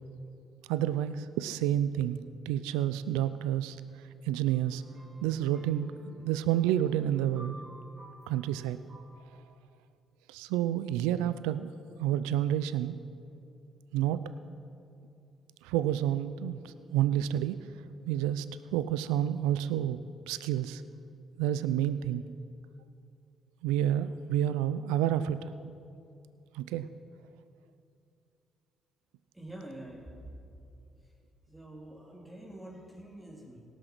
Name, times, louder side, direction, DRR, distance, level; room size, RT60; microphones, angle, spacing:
voice 1, 0.7-2.2 2.5-3.8 4.2-4.8 5.2-7.6 8.3-8.8 10.3-11.7 12.0-13.0 13.9-14.2 15.6-17.6 18.0-18.5 18.7-20.0 20.3-20.8 21.4-22.2 23.6-25.5 26.5-26.9, right 11 dB, 90° right, 14 dB, 0.3 m, -29 dB
sound 1, 4.5-9.5, right 1 dB, 50° right, 2.0 m, -53 dB
voice 2, 29.3-30.2 31.0-31.1 31.5-33.6, right 1 dB, 10° right, -3 dB, 2.9 m, -46 dB
17.5 x 6.2 x 6.0 m, 2.5 s
supercardioid pair, 55°, 0 cm